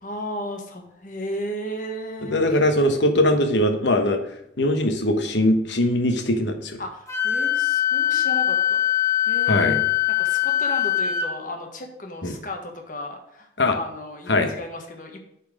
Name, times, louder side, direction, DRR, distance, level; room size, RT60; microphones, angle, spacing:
voice 1, 0.0-2.6 6.8-9.8 10.2-15.2, left 1 dB, 45° left, 3 dB, 1.4 m, -34 dB
voice 2, 2.2-4.2 4.6-6.8 9.5-9.8 12.2-12.3 13.6-13.8 14.3-14.5, left 1 dB, 75° left, 6 dB, 1.1 m, -21 dB
Wind instrument woodwind instrument, 7.1-11.3, left 11 dB, 15° left, 1.1 m, -22 dB
8.5 x 4.4 x 6.3 m, 0.77 s
head